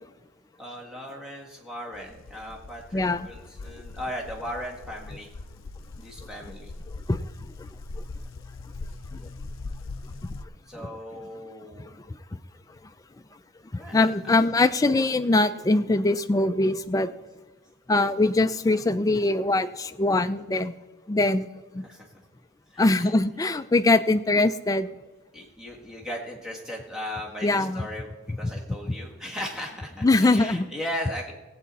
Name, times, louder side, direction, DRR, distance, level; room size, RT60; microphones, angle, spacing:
voice 1, 0.6-5.3 5.9-6.7 10.7-11.9 13.8-14.7 21.8-22.1 22.7-23.5 25.3-31.3, equal, 5° right, -2 dB, 1.5 m, -37 dB
sound 1, 1.9-10.4, left 3 dB, 70° left, 0.5 m, -41 dB
voice 2, 2.9-3.3 7.1-7.2 13.7-17.1 17.9-20.7 21.1-21.5 21.7-21.8 22.8-24.9 27.4-27.8 28.3-28.4 30.0-30.6, left 2 dB, 15° left, 9 dB, 0.3 m, -22 dB
17.5 x 8.2 x 4.1 m, 1.2 s
head